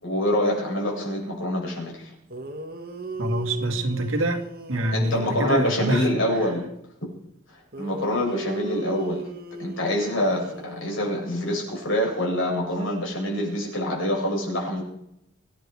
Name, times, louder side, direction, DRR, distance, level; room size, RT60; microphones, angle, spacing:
voice 1, 0.0-2.1 4.9-6.6 7.8-9.3 9.6-14.8, left 1 dB, 70° left, -1 dB, 8.0 m, -26 dB
sound 1, 2.0-2.1 2.3-6.5 7.7-11.7, right 2 dB, 45° right, 1.8 m, -37 dB
voice 2, 3.2-4.4 4.7-6.5, right 1 dB, 75° right, 5 dB, 2.5 m, -26 dB
26.0 x 10.5 x 4.9 m, 0.77 s
head